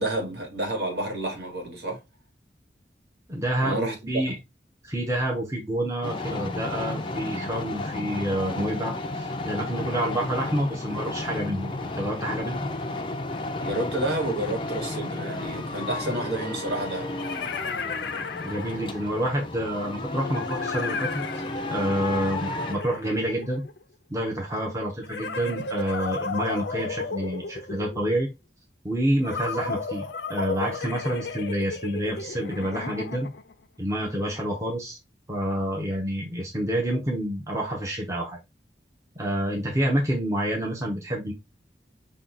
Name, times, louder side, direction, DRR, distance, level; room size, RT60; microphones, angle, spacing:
voice 1, 0.0-2.0 3.6-4.3 13.6-17.1, right 1 dB, 65° right, 1.8 m, -30 dB
voice 2, 3.3-4.3 4.8-12.7 18.3-21.2 21.7-23.6 24.1-28.3 28.8-33.3 33.8-35.0 35.3-38.4 39.2-41.3, right 1 dB, 15° right, 0.9 m, -28 dB
sound 1, 6.0-22.7, left 2 dB, 30° left, 0.5 m, -33 dB
sound 2, 15.3-15.4 16.7-19.1 20.3-23.8 25.0-28.1 29.2-33.5, left 4 dB, 80° left, 0.6 m, -34 dB
5.6 x 2.4 x 3.8 m
head